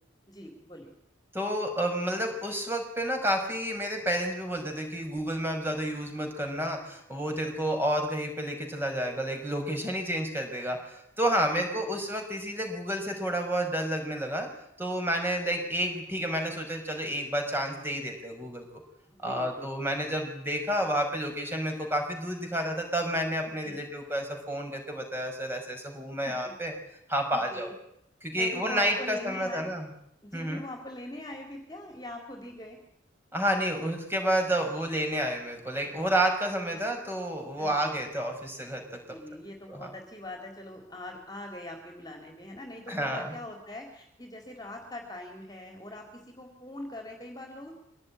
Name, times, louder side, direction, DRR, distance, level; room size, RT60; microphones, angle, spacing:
voice 1, 0.3-0.9 11.5-12.0 19.1-20.2 23.6-23.8 26.3-26.4 27.3-27.7 28.4-29.7 30.2-32.8 36.7-36.8 37.6-37.9 39.1-47.7, left 1 dB, 20° left, 2 dB, 4.0 m, -42 dB
voice 2, 1.3-14.5 14.8-18.6 19.2-26.7 27.1-27.7 28.2-29.9 30.3-30.6 33.3-39.0 39.7-39.9 42.9-43.3, right 1 dB, 10° right, 3 dB, 5.5 m, -30 dB
24.5 x 18.5 x 10.0 m, 0.73 s
head